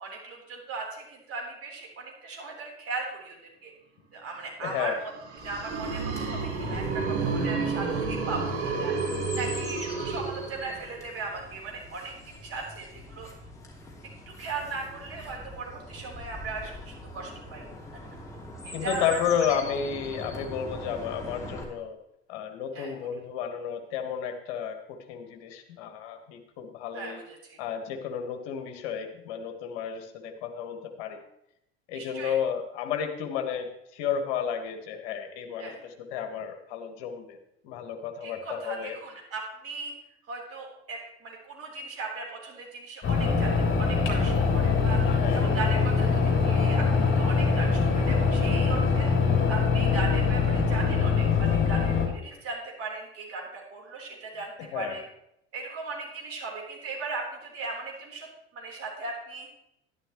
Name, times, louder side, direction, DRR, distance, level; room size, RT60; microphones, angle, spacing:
voice 1, 0.0-3.7 4.1-5.1 5.4-8.9 9.3-13.3 14.3-17.6 18.6-19.2 19.5-19.6 20.3-20.4 22.7-22.9 26.9-27.6 31.9-32.3 35.6-35.8 38.2-39.9 40.3-55.0 55.5-58.3 58.5-59.5, right 4 dB, 45° right, -1 dB, 4.0 m, -38 dB
voice 2, 4.6-5.0 18.7-22.0 22.3-27.2 27.6-31.2 31.9-37.4 37.6-39.0 45.0-45.5 54.7-55.0, left 8 dB, 60° left, 6 dB, 1.6 m, -32 dB
sound 1, 5.1-11.0, right 4 dB, 85° right, 1.6 m, -30 dB
Chirp tweet, 5.4-21.6, left 1 dB, 10° left, 2.8 m, -43 dB
sound 2, 43.0-52.1, left 5 dB, 35° left, 3.0 m, -23 dB
11.5 x 11.5 x 3.1 m, 0.80 s
figure-of-eight pair, 70°, 33 cm